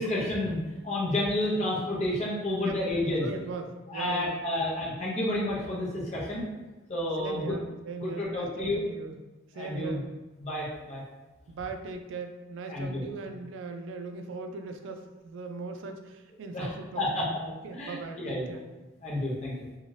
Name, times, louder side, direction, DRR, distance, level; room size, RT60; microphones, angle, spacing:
voice 1, 0.0-3.3 3.9-6.4 6.9-7.6 8.0-8.8 9.5-10.0 10.4-11.0 12.7-13.0 16.5-17.3 17.7-18.5 19.0-19.5, left 1 dB, 35° left, -5 dB, 0.6 m, -30 dB
voice 2, 3.2-4.7 7.2-9.2 9.5-10.1 11.5-18.6, right 3 dB, 75° right, 5 dB, 0.3 m, -39 dB
2.6 x 2.3 x 3.1 m, 1.2 s
head